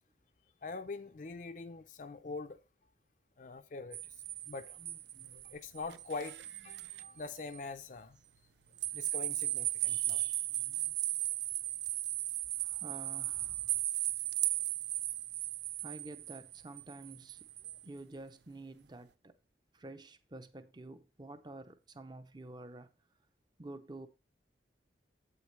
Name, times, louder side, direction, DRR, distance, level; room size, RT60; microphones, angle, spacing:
voice 1, 0.6-2.6 3.4-4.1 4.5-8.2 8.9-10.9, left 3 dB, 45° left, 0.5 m, -44 dB
sound 1, 3.9-7.1 7.5-7.6 8.8-17.8, right 15 dB, 70° right, 0.4 m, -36 dB
voice 2, 12.6-13.8 15.8-19.3 19.7-22.9 23.6-24.1, right 2 dB, 25° right, 0.6 m, -49 dB
8.3 x 8.2 x 3.1 m
head